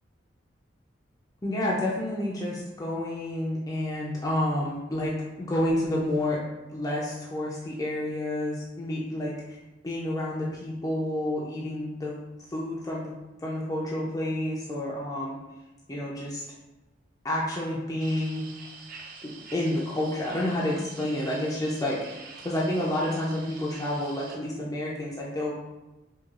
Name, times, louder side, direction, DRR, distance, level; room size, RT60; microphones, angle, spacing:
voice 1, 1.4-6.4 6.7-9.6 9.8-12.2 12.5-13.1 13.4-15.4 15.9-16.4 17.2-18.4 19.2-22.0 22.4-25.6, left 1 dB, 20° left, -5 dB, 0.4 m, -29 dB
sound 1, 18.0-24.4, right 4 dB, 45° right, 0.4 m, -46 dB
4.6 x 2.2 x 2.4 m, 1.0 s
head